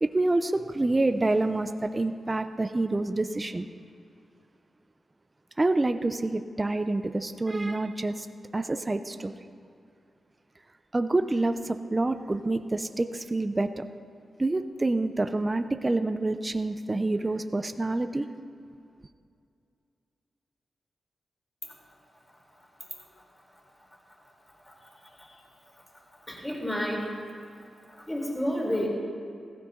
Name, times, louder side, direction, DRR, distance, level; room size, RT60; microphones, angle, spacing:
voice 1, 0.0-3.7 5.6-8.3 8.5-9.3 10.9-13.8 14.4-18.3, right 2 dB, 25° right, 8 dB, 0.7 m, -27 dB
voice 2, 26.3-27.1 28.0-28.9, equal, 15° left, -3 dB, 4.5 m, -30 dB
16.0 x 15.0 x 3.9 m, 2.4 s
cardioid pair, 65°, 0 cm